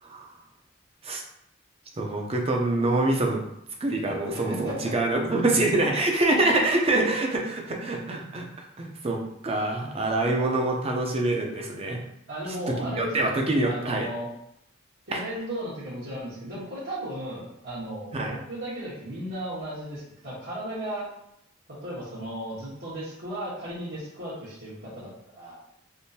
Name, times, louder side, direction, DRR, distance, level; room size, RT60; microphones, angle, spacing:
voice 1, 0.0-0.3 1.0-1.2 2.0-3.4 3.8-12.0 12.8-14.1 15.1-15.2 18.1-18.4, right 2 dB, 30° right, 1 dB, 0.5 m, -25 dB
voice 2, 4.3-4.9 10.2-10.5 12.3-13.4 13.6-14.3 15.1-21.1 21.8-25.6, right 1 dB, 75° right, -12 dB, 1.2 m, -35 dB
3.6 x 2.5 x 2.7 m, 0.76 s
head